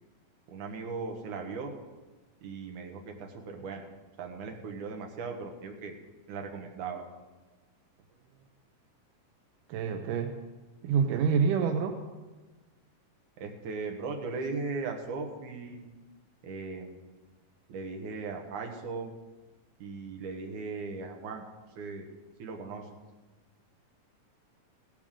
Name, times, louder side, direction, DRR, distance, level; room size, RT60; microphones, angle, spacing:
voice 1, 0.5-1.7 2.4-3.8 4.2-5.9 6.3-7.0 13.4-15.8 16.4-17.0 17.7-19.1 19.8-21.4 21.8-22.1 22.4-22.9, right 4 dB, 75° right, 3 dB, 2.8 m, -38 dB
voice 2, 9.7-10.3 10.8-12.0, right 6 dB, 90° right, 5 dB, 2.4 m, -27 dB
16.5 x 12.5 x 3.7 m, 1.2 s
omnidirectional pair, 3.7 m